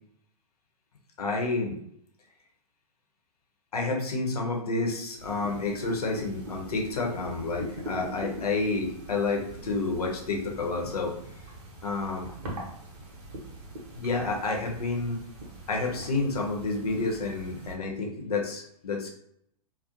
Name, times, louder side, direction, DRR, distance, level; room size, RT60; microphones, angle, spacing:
voice 1, 1.2-1.7 3.7-11.1 11.8-12.3 14.0-15.2 15.7-19.1, left 3 dB, 75° left, 1 dB, 0.7 m, -29 dB
sound 1, 5.2-17.7, right 1 dB, 45° right, 0.9 m, -43 dB
2.5 x 2.0 x 2.8 m, 0.71 s
figure-of-eight pair, 115°, 20 cm